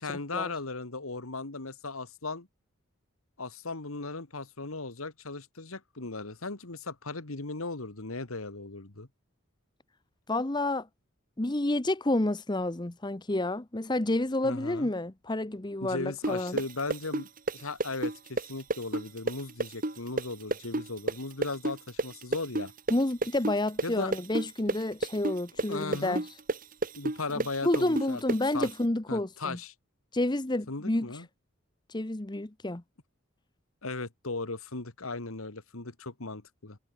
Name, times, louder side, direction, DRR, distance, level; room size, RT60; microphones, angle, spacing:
voice 1, 0.0-2.5 3.4-9.1 14.4-14.9 15.8-17.3 17.5-22.7 23.8-24.1 25.7-26.2 27.0-28.2 28.5-28.7 29.1-29.7 30.7-31.3 33.8-36.8, left 3 dB, 90° left, 2.0 m, -37 dB
voice 2, 10.3-10.9 11.4-16.6 22.9-26.2 27.6-29.6 30.1-31.1 31.9-32.8, left 1 dB, 20° left, 0.8 m, -29 dB
sound 1, 16.2-23.9 24.1-28.7, right 2 dB, 40° right, 1.8 m, -30 dB
head